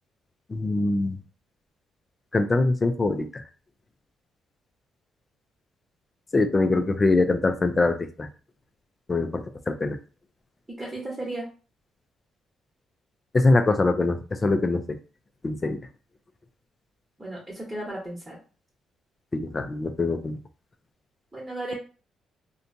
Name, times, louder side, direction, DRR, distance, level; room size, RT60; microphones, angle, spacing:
voice 1, 0.5-1.2 2.3-3.4 6.3-8.3 9.1-10.0 13.3-14.8 15.4-15.8 19.3-20.4, left 2 dB, 30° left, 8 dB, 0.4 m, -23 dB
voice 2, 10.8-11.5 17.2-18.4 21.3-21.7, right 1 dB, 15° right, -4 dB, 1.1 m, -34 dB
2.7 x 2.2 x 2.6 m, 0.35 s
cardioid pair, 90°, 0 cm